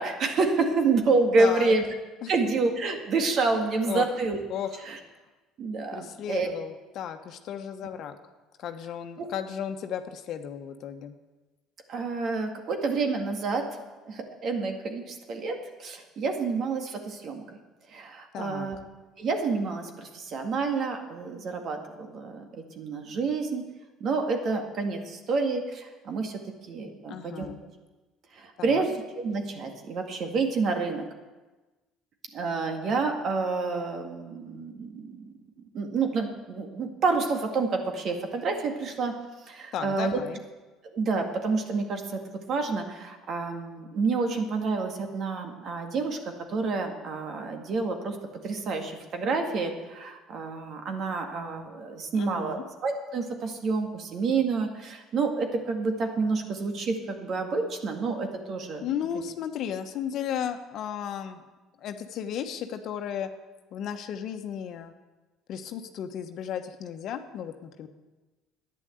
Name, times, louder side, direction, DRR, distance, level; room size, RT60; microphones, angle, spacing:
voice 1, 0.0-1.8 2.3-4.4 4.9-5.0 5.6-6.5 9.2-9.3 11.9-13.7 14.1-17.4 17.9-18.8 19.2-23.6 24.0-26.4 26.7-27.5 28.4-31.1 32.3-35.3 35.7-39.1 39.5-40.2 40.9-48.2 48.4-58.8, right 4 dB, 55° right, 4 dB, 2.0 m, -28 dB
voice 2, 1.4-1.7 2.2-2.3 3.8-4.1 4.5-4.8 5.9-8.1 8.6-11.1 18.3-18.7 27.1-27.6 28.6-28.9 39.7-40.4 52.1-52.6 58.8-61.4 61.8-63.3 63.7-64.9 65.5-67.9, left 9 dB, 60° left, 7 dB, 1.1 m, -34 dB
11.0 x 9.7 x 7.9 m, 1.2 s
supercardioid pair, 75°, 0 cm